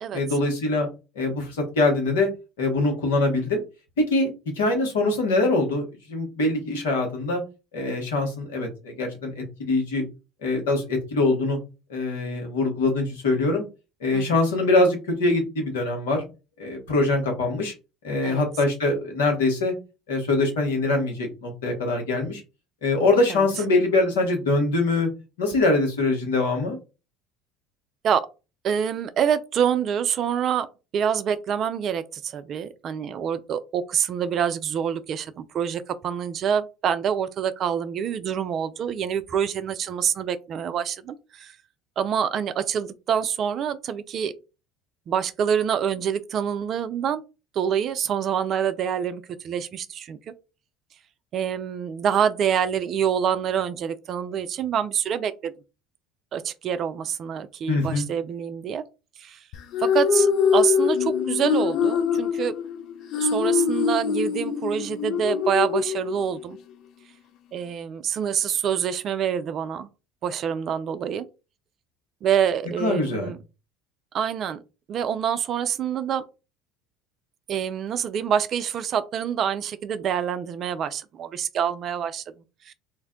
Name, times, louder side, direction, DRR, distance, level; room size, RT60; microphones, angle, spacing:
voice 1, 0.1-0.9 1.1-2.3 2.6-3.6 4.0-4.3 4.6-7.4 7.7-10.0 10.4-11.6 11.9-13.6 14.0-16.2 16.6-17.7 18.0-19.7 20.1-22.4 22.8-25.1 25.4-26.8 57.7-58.1 72.8-73.3, left 2 dB, 80° left, 1.1 m, -23 dB
voice 2, 28.6-30.7 30.9-41.6 42.0-44.3 45.1-47.2 47.5-50.3 51.3-55.5 56.3-58.8 59.2-59.4 59.8-62.6 63.2-66.6 67.5-69.9 70.2-71.3 72.2-73.4 74.1-74.6 74.9-76.2 77.5-82.2 82.7-82.8, right 8 dB, 50° right, 0.4 m, -26 dB
sound 1, 59.5-66.6, left 6 dB, 60° left, 0.4 m, -24 dB
2.5 x 2.2 x 3.7 m
hypercardioid pair, 70°, 0 cm